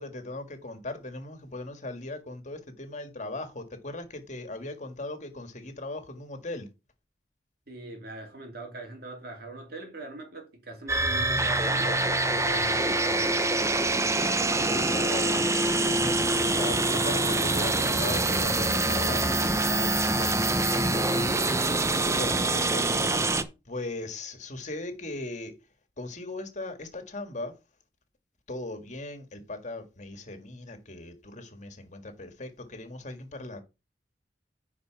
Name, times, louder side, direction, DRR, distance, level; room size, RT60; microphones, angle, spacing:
voice 1, 0.0-6.7 14.6-21.6 21.9-23.4 23.7-25.6 26.0-27.5 28.5-33.6, left 2 dB, 45° left, 1.8 m, -38 dB
voice 2, 7.7-14.0, right 2 dB, 60° right, 2.9 m, -42 dB
sound 1, 10.9-23.4, right 2 dB, 15° right, 0.7 m, -25 dB
9.9 x 4.8 x 4.6 m
head